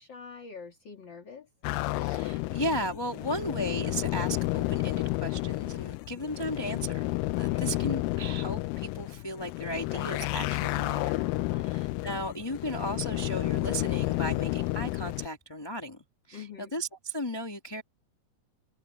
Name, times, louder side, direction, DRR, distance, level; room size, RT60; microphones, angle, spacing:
voice 1, 0.0-1.5 7.4-7.7 11.4-11.8 16.3-16.7, left 6 dB, 35° left, 2.6 m, -46 dB
sound 1, 1.6-15.3, left 19 dB, 90° left, 2.3 m, -31 dB
voice 2, 1.9-16.0 16.3-17.8, equal, 10° left, 2.0 m, -35 dB
omnidirectional pair, 3.9 m